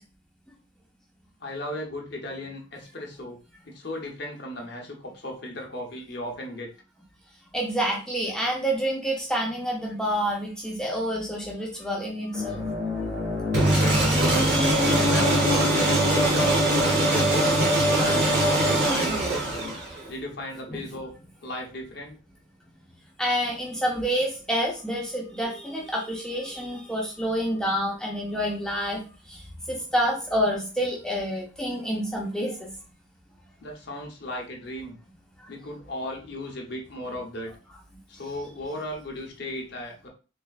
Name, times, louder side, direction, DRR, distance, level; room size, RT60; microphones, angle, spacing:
voice 1, 1.4-3.4 3.7-6.7 9.9-10.0 13.7-14.7 15.1-16.7 17.0-17.5 18.0-19.8 20.1-21.1 21.4-22.2 33.6-35.0 35.5-37.5 38.1-40.1, left 1 dB, 55° left, 1 dB, 0.8 m, -36 dB
voice 2, 7.5-12.6 20.7-20.8 23.2-29.0 29.3-29.4 29.7-32.7, equal, 5° left, -2 dB, 0.6 m, -28 dB
sound 1, 12.3-21.3 21.6-21.8 23.8-23.9, left 3 dB, 30° right, 1.4 m, -35 dB
sound 2, 13.5-20.1, right 1 dB, 50° right, 1.0 m, -21 dB
3.5 x 3.3 x 2.3 m, 0.34 s
head